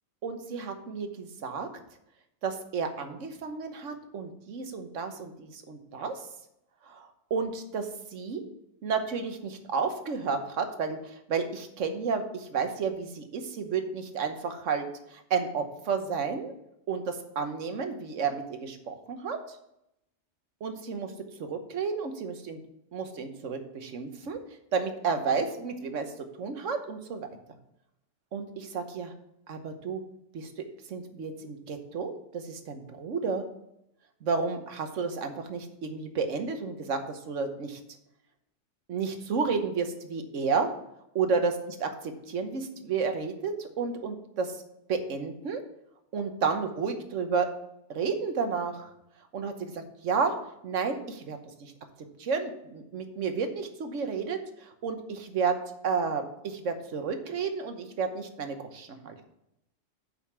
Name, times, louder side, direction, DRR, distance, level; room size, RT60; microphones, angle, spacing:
voice 1, 0.2-1.7 2.4-6.1 6.9-8.4 8.8-16.5 16.9-19.4 20.6-21.1 21.5-22.6 22.9-24.4 24.7-26.1 26.4-27.3 28.3-29.1 29.5-30.0 30.3-30.5 30.9-33.4 34.2-37.8 38.9-40.7 41.1-44.5 44.9-45.6 46.1-47.5 47.9-48.9 49.3-50.4 50.6-51.7 52.2-55.6 55.8-59.2, right 5 dB, 85° right, 7 dB, 1.3 m, -31 dB
7.6 x 5.4 x 5.9 m, 0.80 s
omnidirectional pair, 1.3 m